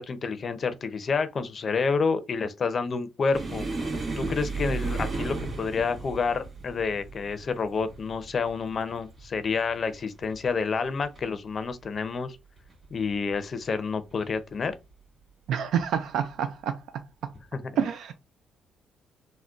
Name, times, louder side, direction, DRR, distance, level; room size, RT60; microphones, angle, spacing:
voice 1, 0.0-3.6 4.2-12.4 12.9-14.7 17.5-17.6, left 5 dB, 45° left, 0.5 m, -29 dB
sound 1, 3.3-10.5 10.8-11.2 11.6-11.7 12.6-13.1 14.1-14.3 15.7-15.8, right 3 dB, 35° right, 1.8 m, -35 dB
voice 2, 15.5-16.8 17.8-18.1, right 8 dB, 75° right, 0.3 m, -27 dB
3.7 x 2.1 x 2.4 m
cardioid pair, 90°, 0 cm